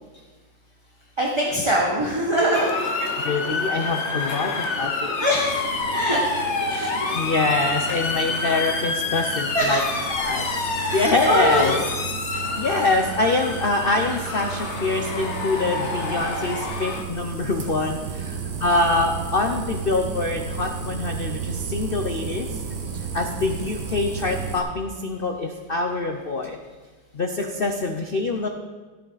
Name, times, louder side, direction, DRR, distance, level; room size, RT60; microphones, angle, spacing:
voice 1, 1.2-2.8 5.2-5.5 5.9-6.2 9.5-9.8 10.8-11.8, equal, 20° right, -3 dB, 1.0 m, -22 dB
Motor vehicle (road) / Siren, 2.5-17.0, left 3 dB, 45° left, 1.0 m, -28 dB
voice 2, 2.6-5.3 6.7-9.8 10.2-10.4 10.9-11.8 12.6-22.5 23.1-26.6 27.1-28.5, left 3 dB, 75° left, 3 dB, 0.5 m, -25 dB
sound 1, 5.3-24.6, right 6 dB, 55° right, 1.5 m, -34 dB
15.0 x 8.0 x 4.1 m, 1.4 s
omnidirectional pair, 2.1 m